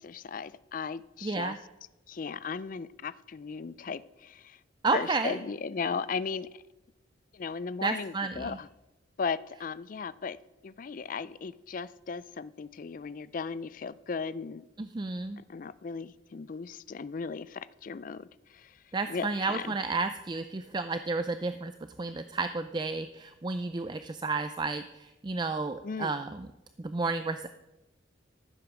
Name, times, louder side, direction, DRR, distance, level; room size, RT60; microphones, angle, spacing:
voice 1, 0.0-1.6 2.1-4.6 4.9-6.5 7.3-8.7 9.2-10.4 10.6-14.7 15.5-18.8 19.1-19.7 25.8-26.1, left 5 dB, 45° left, 17 dB, 0.4 m, -36 dB
voice 2, 1.2-1.6 4.8-5.4 7.8-8.6 14.8-15.4 18.9-21.7 22.0-26.5 26.8-27.5, right 3 dB, 25° right, 10 dB, 0.4 m, -32 dB
14.0 x 7.9 x 6.3 m, 1.0 s
head